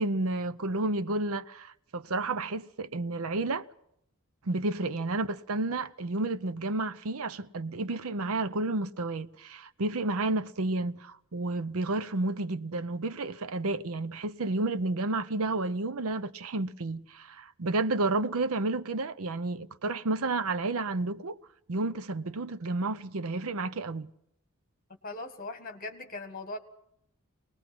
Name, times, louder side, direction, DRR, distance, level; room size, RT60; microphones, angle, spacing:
voice 1, 0.0-3.7 4.5-21.4 21.7-24.1, right 2 dB, 70° right, 0.7 m, -31 dB
voice 2, 25.0-26.6, left 2 dB, 40° left, 1.8 m, -40 dB
23.5 x 19.5 x 6.0 m
head